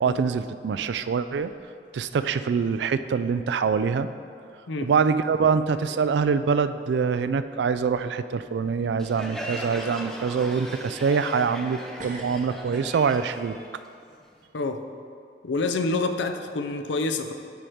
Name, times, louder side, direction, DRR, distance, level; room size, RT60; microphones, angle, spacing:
voice 1, 0.0-1.5 1.9-4.1 4.8-13.6, right 5 dB, 65° right, 12 dB, 0.3 m, -24 dB
sound 1, 1.3-2.2 2.5-3.0 3.4-3.5 4.4-4.5 5.2-5.3 5.7-6.1 6.4-6.5 9.1-9.2 9.5-10.0 10.5-11.7 12.0-13.3, right 2 dB, 45° right, 0.8 m, -46 dB
Crowd, 9.0-14.4, equal, 5° left, 0.5 m, -38 dB
voice 2, 14.5-14.8 15.4-17.3, left 3 dB, 75° left, 7 dB, 0.5 m, -27 dB
9.2 x 4.5 x 5.0 m, 2.3 s
head